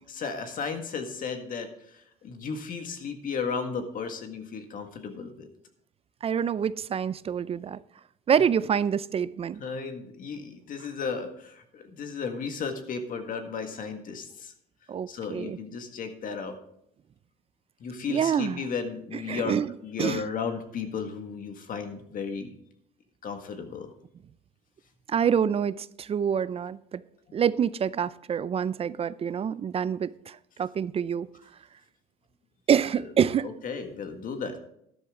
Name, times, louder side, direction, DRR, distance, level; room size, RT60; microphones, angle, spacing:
voice 1, 0.1-1.7 2.2-5.5 9.6-14.5 15.1-16.6 17.8-19.6 19.8-22.5 23.2-23.9 33.0-33.1 33.6-34.6, left 5 dB, 55° left, 1.8 m, -34 dB
voice 2, 6.2-7.8 8.3-9.6 14.9-15.6 18.1-18.6 19.3-19.7 20.0-20.2 25.1-27.0 27.3-31.3 32.7-33.5, right 8 dB, 35° right, 0.4 m, -26 dB
12.5 x 11.0 x 3.7 m
cardioid pair, 110°, 17 cm